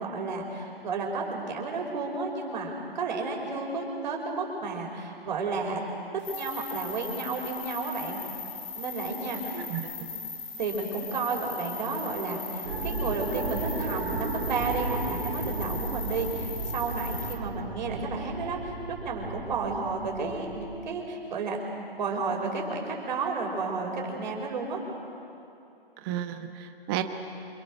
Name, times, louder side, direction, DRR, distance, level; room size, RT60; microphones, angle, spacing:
voice 1, 0.0-5.8 6.3-8.2 8.7-9.6 10.0-10.1 10.6-21.6 22.0-24.8, right 4 dB, 50° right, 0 dB, 6.0 m, -32 dB
sound 1, 6.2-17.3, left 5 dB, 35° left, 4.9 m, -39 dB
voice 2, 9.5-9.9 26.0-27.0, right 12 dB, 25° right, 6 dB, 1.4 m, -33 dB
sound 2, 12.6-20.9, right 3 dB, 80° right, 5.8 m, -34 dB
29.0 x 28.0 x 6.6 m, 2.7 s
hypercardioid pair, 145°, 30 cm